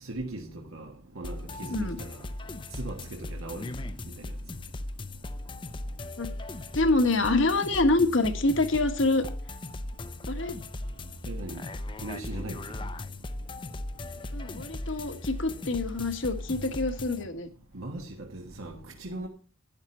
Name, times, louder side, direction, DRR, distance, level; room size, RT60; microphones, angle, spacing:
voice 1, 0.0-0.9 1.1-2.2 2.8-3.7 11.3-11.6 12.0-12.6 17.7-19.3, right 2 dB, 80° right, 1.4 m, -39 dB
sound 1, 1.2-17.2, left 1 dB, 25° left, 0.5 m, -38 dB
voice 2, 6.7-9.2 10.3-10.5 14.3-17.5, left 2 dB, 65° left, 1.5 m, -26 dB
12.0 x 9.9 x 4.4 m
head